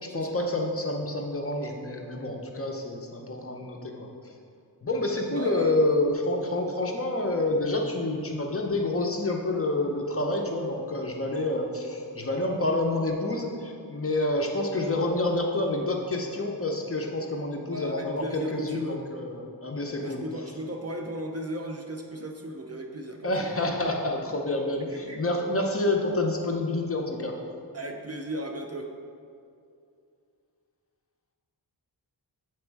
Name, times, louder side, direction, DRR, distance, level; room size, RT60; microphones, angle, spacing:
voice 1, 0.0-4.1 4.8-20.2 23.2-27.4, left 2 dB, 30° left, 1 dB, 0.7 m, -28 dB
voice 2, 5.3-5.8 17.7-19.0 20.0-23.5 24.8-25.2 27.7-28.9, equal, 35° right, 3 dB, 0.5 m, -35 dB
7.9 x 3.2 x 4.5 m, 2.4 s
wide cardioid pair, 70°, 43 cm